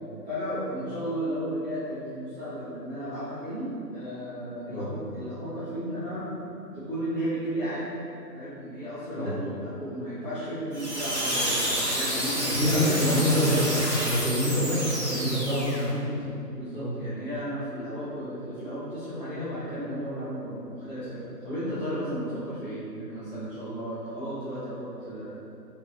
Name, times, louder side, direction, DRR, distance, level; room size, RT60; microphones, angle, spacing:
voice 1, 0.2-6.3 6.7-7.9 8.3-12.9 15.2-15.6 16.0-25.4, equal, 35° left, -17 dB, 0.8 m, -34 dB
sound 1, 10.7-15.9, equal, 45° right, 0.5 m, -29 dB
voice 2, 12.4-16.3 16.7-16.9, left 1 dB, 55° left, -10 dB, 1.5 m, -26 dB
3.7 x 2.8 x 2.5 m, 2.6 s
figure-of-eight pair, 170°, 49 cm